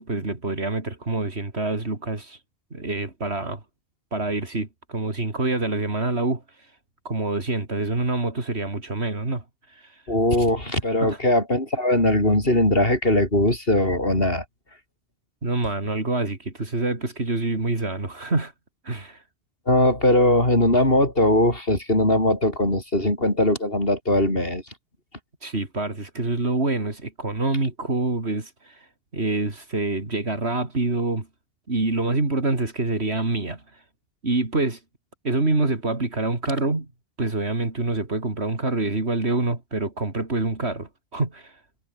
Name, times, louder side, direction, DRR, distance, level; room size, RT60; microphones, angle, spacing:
voice 1, 0.0-2.4 2.7-3.6 4.1-6.4 7.1-9.4 9.8-9.9 11.0-11.2 15.4-18.5 18.8-19.2 25.4-28.8 29.1-31.3 31.7-33.6 34.2-34.8 35.2-36.9 37.2-41.5, right 2 dB, 85° right, 3.9 m, -26 dB
voice 2, 10.1-14.4 19.7-24.6, left 1 dB, 60° left, 8.0 m, -20 dB
omnidirectional pair, 1.1 m